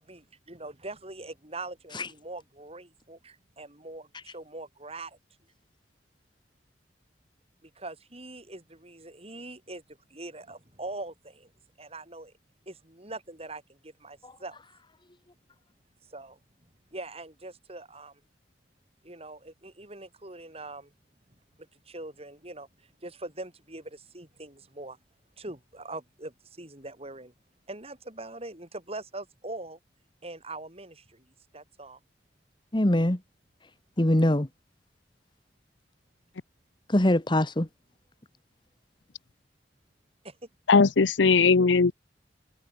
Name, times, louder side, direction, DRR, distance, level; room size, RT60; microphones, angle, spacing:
voice 1, 0.0-5.2 7.6-11.5 11.8-12.3 12.7-14.6 16.1-16.4 16.9-18.2 19.0-20.9 21.6-25.0 25.4-27.3 27.7-29.8 30.2-31.3 31.5-32.0 40.2-40.4, right 2 dB, 35° right, 7.2 m, -42 dB
voice 2, 32.7-33.2 34.0-34.5 36.9-37.7, left 1 dB, 25° left, 1.4 m, -23 dB
voice 3, 40.7-41.9, left 4 dB, 85° left, 0.7 m, -19 dB
head